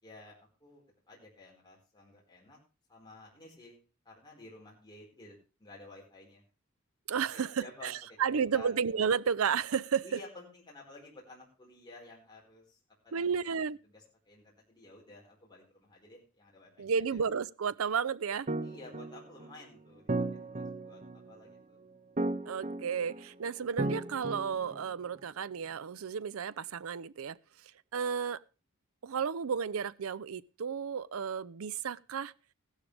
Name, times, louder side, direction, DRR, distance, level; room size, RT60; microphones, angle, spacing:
voice 1, 0.0-2.6 2.9-3.8 4.0-6.4 7.3-8.7 10.0-12.8 13.0-16.9 18.6-21.8, left 2 dB, 20° left, 4.8 m, -53 dB
voice 2, 7.1-10.2 13.1-13.8 16.8-18.5 22.5-27.4 27.6-28.4 29.0-32.3, right 6 dB, 80° right, 0.5 m, -32 dB
sound 1, 18.5-25.2, right 2 dB, 35° right, 0.8 m, -36 dB
15.5 x 12.0 x 3.4 m
head